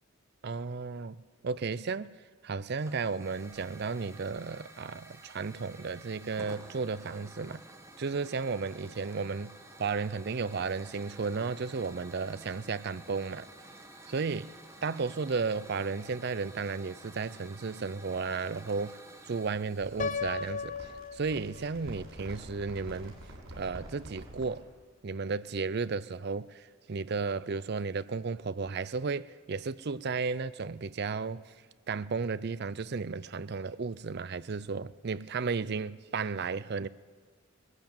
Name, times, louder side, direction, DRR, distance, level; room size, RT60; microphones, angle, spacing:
voice 1, 0.4-1.2 1.4-2.1 2.4-7.6 8.0-9.5 9.8-13.5 14.1-14.5 14.8-19.0 19.3-23.2 23.6-24.6 25.0-26.6 26.9-31.4 31.9-36.9, right 4 dB, 50° right, 0.5 m, -34 dB
Hiss / Fire, 2.8-20.1, right 2 dB, 15° right, 1.5 m, -52 dB
sound 1, 19.5-24.6, right 1 dB, 75° right, 7.1 m, -47 dB
Piano, 20.0-22.0, left 5 dB, 35° left, 0.5 m, -36 dB
19.5 x 15.0 x 8.8 m
head